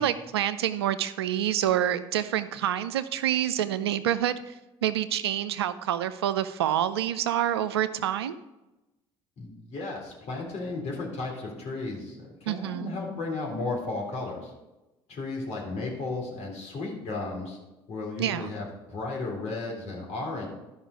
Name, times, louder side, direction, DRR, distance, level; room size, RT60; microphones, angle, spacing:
voice 1, 0.0-4.5 4.8-8.4 12.5-12.9 18.2-18.5, right 11 dB, 90° right, 13 dB, 0.4 m, -27 dB
voice 2, 9.4-14.5 15.1-17.6 17.9-20.5, left 3 dB, 60° left, -1 dB, 3.5 m, -34 dB
12.0 x 5.5 x 5.0 m, 1.0 s
hypercardioid pair, 60°, 13 cm